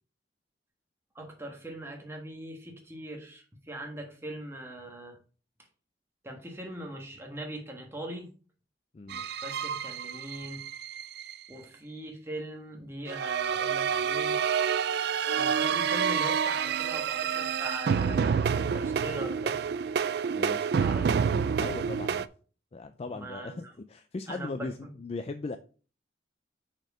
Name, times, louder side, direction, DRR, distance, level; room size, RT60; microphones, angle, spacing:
voice 1, 1.1-5.2 6.2-8.3 9.1-10.6 11.5-14.4 15.3-19.6 20.8-21.2 23.1-23.7 24.3-24.9, right 1 dB, 15° right, 1 dB, 1.4 m, -41 dB
sound 1, 9.1-11.3 13.1-22.3, right 7 dB, 60° right, 0.3 m, -28 dB
voice 2, 20.3-20.7 21.0-22.3 22.7-23.6 23.9-24.7 25.0-25.6, left 3 dB, 35° left, 10 dB, 0.4 m, -38 dB
6.3 x 4.5 x 4.8 m, 0.38 s
head